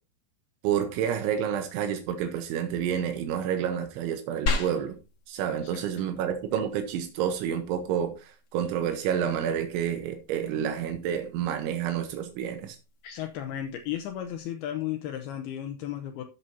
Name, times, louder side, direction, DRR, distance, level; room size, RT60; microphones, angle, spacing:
voice 1, 0.6-5.0 5.3-12.8, right 9 dB, 85° right, 3.3 m, -29 dB
sound 1, 4.5-14.5, left 3 dB, 50° left, 1.9 m, -39 dB
voice 2, 13.0-16.2, left 11 dB, 90° left, 2.2 m, -34 dB
13.0 x 8.2 x 2.7 m
omnidirectional pair, 5.3 m